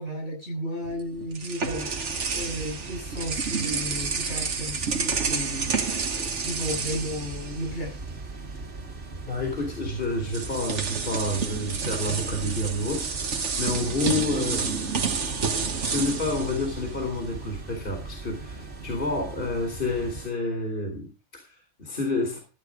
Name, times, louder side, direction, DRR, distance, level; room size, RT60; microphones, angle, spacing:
voice 1, 0.0-7.9, equal, 70° left, 1 dB, 8.5 m, -34 dB
sound 1, 0.8-8.1 8.4-8.6 9.7-9.8 10.3-17.4, right 5 dB, 90° right, 1.6 m, -30 dB
sound 2, 1.6-20.3, right 3 dB, 65° right, 2.3 m, -39 dB
voice 2, 9.2-22.4, left 2 dB, 50° left, 2 dB, 2.8 m, -30 dB
14.0 x 8.5 x 5.0 m, 0.32 s
omnidirectional pair, 1.2 m